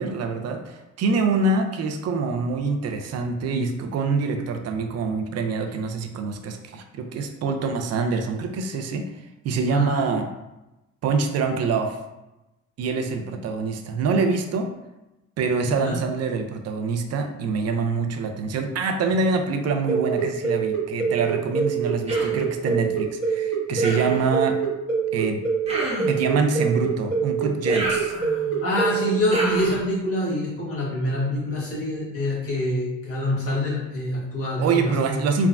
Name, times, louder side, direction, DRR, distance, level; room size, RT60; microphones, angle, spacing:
voice 1, 0.0-9.1 9.4-10.3 11.0-12.0 12.8-14.7 15.4-24.6 25.1-25.4 26.1-28.1 34.6-35.5, right 4 dB, 55° right, 5 dB, 0.5 m, -25 dB
voice 2, 9.7-10.2 15.6-16.0 28.6-35.2, left 1 dB, 50° left, -6 dB, 1.2 m, -26 dB
sound 1, 19.9-29.7, right 5 dB, 85° left, 1.5 m, -25 dB
Human voice, 22.1-22.4 23.8-24.3 25.7-26.2 27.7-28.6 29.3-29.8, right 1 dB, 20° right, 0.8 m, -30 dB
3.4 x 2.0 x 2.4 m, 0.98 s
cardioid pair, 90°, 30 cm